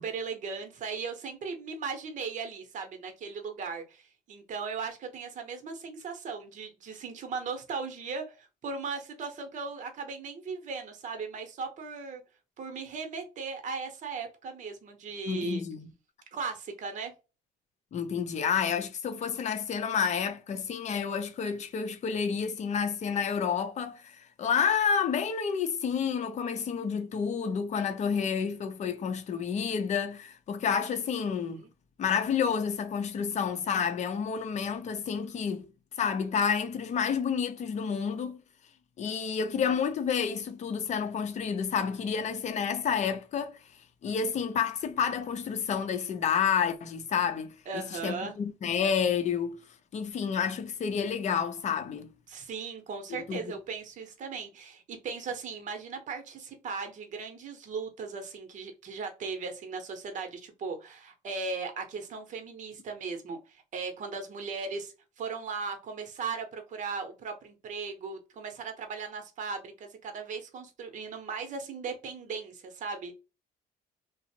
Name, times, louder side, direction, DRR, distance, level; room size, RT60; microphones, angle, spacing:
voice 1, 0.0-12.2 12.6-15.6 16.3-17.1 31.3-31.7 47.7-48.3 52.3-73.1, right 5 dB, 50° right, 0.8 m, -37 dB
voice 2, 15.3-15.9 17.9-31.6 32.0-35.7 36.0-38.4 39.0-49.6 49.9-52.1 53.1-53.5, left 7 dB, 45° left, 0.5 m, -30 dB
2.5 x 2.0 x 2.7 m
cardioid pair, 110°, 17 cm